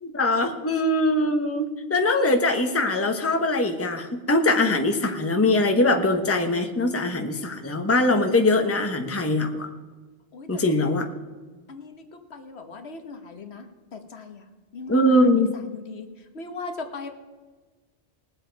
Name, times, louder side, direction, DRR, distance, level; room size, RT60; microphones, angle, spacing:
voice 1, 0.0-9.7 10.5-11.1 14.9-15.5, left 2 dB, 15° left, 5 dB, 1.0 m, -22 dB
voice 2, 10.3-10.8 11.7-13.7 13.9-14.5 14.7-17.1, left 4 dB, 65° left, 6 dB, 1.3 m, -39 dB
20.5 x 7.6 x 4.6 m, 1.3 s
omnidirectional pair, 1.2 m